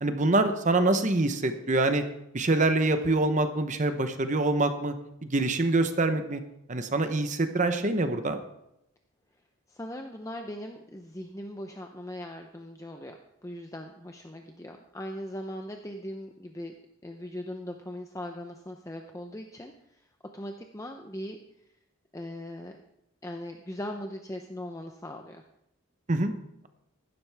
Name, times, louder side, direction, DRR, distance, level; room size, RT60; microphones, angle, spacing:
voice 1, 0.0-2.0 2.3-5.0 5.2-6.4 6.7-8.4 26.1-26.3, right 2 dB, 35° right, 8 dB, 0.8 m, -25 dB
voice 2, 9.7-16.7 17.0-20.1 20.3-21.7 22.1-22.8 23.2-25.4, left 1 dB, 15° left, 4 dB, 0.6 m, -40 dB
15.5 x 12.0 x 3.5 m, 0.83 s
head